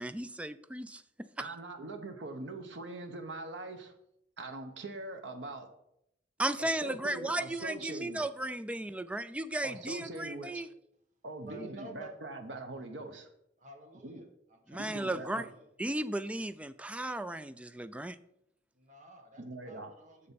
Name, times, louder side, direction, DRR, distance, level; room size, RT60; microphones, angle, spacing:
voice 1, 0.0-1.5 6.4-10.7 14.7-15.5 15.8-18.2, right 1 dB, 5° right, 13 dB, 0.3 m, -35 dB
voice 2, 1.4-3.9 4.4-5.7 6.6-8.2 9.6-10.6 11.2-13.3 14.0-14.2 14.7-15.5 19.4-19.9 20.2-20.3, right 2 dB, 90° right, 6 dB, 0.9 m, -42 dB
voice 3, 11.4-12.1 13.6-15.7 18.7-20.3, right 2 dB, 45° right, 3 dB, 1.3 m, -51 dB
6.7 x 6.6 x 5.3 m, 0.78 s
head